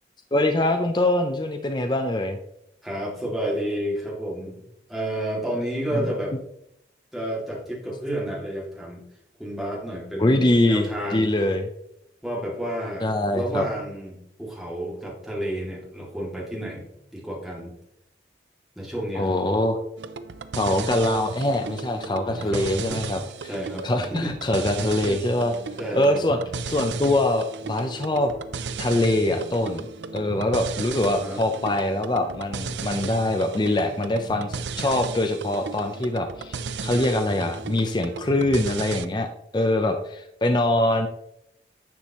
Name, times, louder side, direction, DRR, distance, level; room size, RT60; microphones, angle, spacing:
voice 1, 0.3-2.4 10.2-11.7 13.0-13.6 19.2-19.8 20.6-23.2 23.8-25.5 25.9-26.4 26.7-28.3 28.8-29.9 30.1-36.6 36.8-39.3 39.5-41.1, left 1 dB, 25° left, 6 dB, 0.5 m, -23 dB
voice 2, 2.8-4.6 4.9-6.3 7.1-9.0 9.4-10.4 10.7-11.3 12.2-13.1 13.3-16.9 17.1-17.7 18.8-19.4 22.3-23.0 23.4-24.3 25.0-25.2 25.8-26.2 31.0-31.4, right 1 dB, ahead, -4 dB, 2.3 m, -31 dB
sound 1, 20.0-39.1, right 4 dB, 90° right, 0.6 m, -35 dB
10.5 x 7.2 x 3.0 m, 0.79 s
head